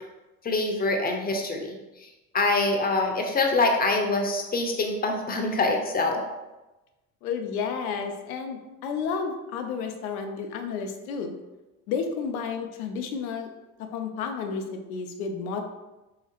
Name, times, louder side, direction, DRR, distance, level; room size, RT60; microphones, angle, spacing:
voice 1, 0.4-2.1 2.3-6.2, left 2 dB, 20° left, 2 dB, 0.6 m, -25 dB
voice 2, 7.2-11.3 11.9-13.5 13.9-15.6, left 5 dB, 85° left, 5 dB, 0.6 m, -31 dB
3.0 x 2.8 x 2.8 m, 1.1 s
hypercardioid pair, 75°, 42 cm